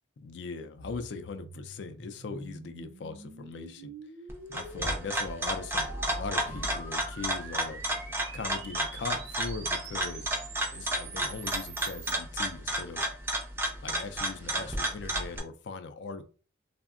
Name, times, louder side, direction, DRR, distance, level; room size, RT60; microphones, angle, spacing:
voice 1, 0.2-3.9 4.5-7.8 8.3-10.4 10.7-13.0 13.8-16.2, left 4 dB, 65° left, 9 dB, 0.4 m, -40 dB
sound 1, 0.8-12.1, right 3 dB, 60° right, 0.5 m, -46 dB
sound 2, 4.3-15.4, right 1 dB, 10° right, 0.4 m, -32 dB
3.4 x 2.0 x 2.4 m, 0.38 s
head